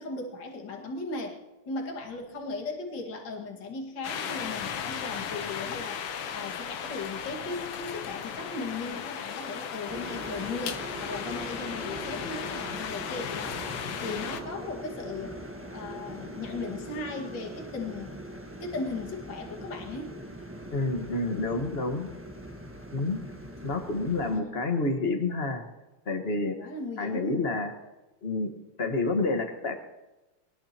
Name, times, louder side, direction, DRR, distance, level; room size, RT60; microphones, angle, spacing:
voice 1, 0.0-1.4 1.7-13.6 14.0-15.4 15.7-18.2 18.6-20.2 24.3-24.6 26.6-27.5, left 3 dB, 55° left, 0 dB, 2.7 m, -37 dB
sound 1, 4.0-14.4, left 7 dB, 80° left, 2.0 m, -36 dB
sound 2, 9.9-24.4, right 1 dB, 10° right, 1.1 m, -41 dB
voice 2, 20.7-22.1 22.9-23.2 23.6-25.7 26.1-26.6 27.0-27.7 28.2-28.5 28.8-29.7, left 3 dB, 30° left, 4 dB, 1.6 m, -28 dB
23.0 x 19.0 x 3.0 m, 1.1 s
omnidirectional pair, 2.4 m